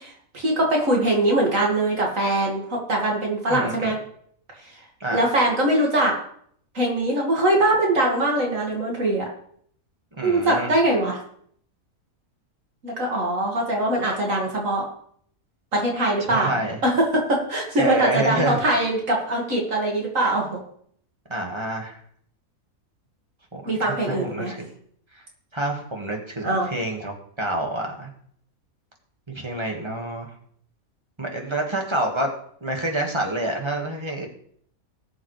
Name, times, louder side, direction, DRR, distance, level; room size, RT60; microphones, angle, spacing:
voice 1, 0.0-4.0 5.1-6.2 6.7-9.3 10.2-11.2 12.8-14.9 15.7-20.6 23.6-24.5 26.4-26.7, right 1 dB, 65° right, -1 dB, 2.6 m, -22 dB
voice 2, 3.5-3.9 5.0-5.2 10.2-10.7 16.3-16.8 17.8-18.6 21.3-22.0 23.5-24.6 25.1-25.2 25.5-28.1 29.3-30.3 31.2-32.3 32.6-34.3, right 1 dB, 20° right, 1 dB, 1.9 m, -27 dB
19.0 x 7.3 x 3.3 m, 0.63 s
omnidirectional pair, 1.5 m